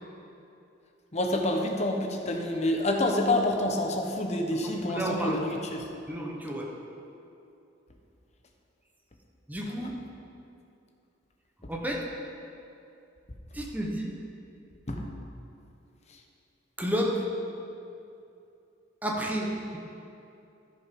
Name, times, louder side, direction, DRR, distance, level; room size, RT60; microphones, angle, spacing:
voice 1, 1.1-5.8 14.9-15.0, left 1 dB, 35° left, 2 dB, 1.0 m, -27 dB
voice 2, 4.6-5.5 6.1-6.7 9.5-9.9 11.7-12.1 13.5-14.1 16.8-17.3 19.0-19.8, equal, 10° right, -1 dB, 1.1 m, -31 dB
14.0 x 5.2 x 5.3 m, 2.7 s
head